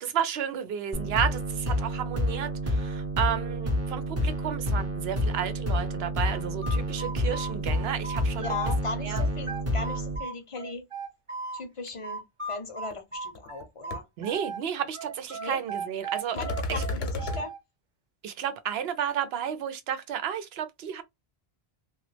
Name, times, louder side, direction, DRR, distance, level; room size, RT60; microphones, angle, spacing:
voice 1, 0.0-8.5 9.0-9.2 14.2-16.4 16.7-16.8 18.2-21.0, right 9 dB, 75° right, 0.8 m, -32 dB
sound 1, 0.9-10.2, equal, 15° right, 0.7 m, -29 dB
sound 2, 6.2-8.8 9.1-11.6 12.0-14.6 14.9-17.6, right 4 dB, 30° right, 1.1 m, -37 dB
voice 2, 8.3-10.8 11.5-14.1 15.4-15.6 16.3-17.5, left 3 dB, 40° left, 0.6 m, -37 dB
sound 3, 12.9-13.0 13.4-13.6 13.9-14.0 16.4-17.4, left 2 dB, 75° left, 0.9 m, -31 dB
2.9 x 2.3 x 3.1 m
omnidirectional pair, 1.0 m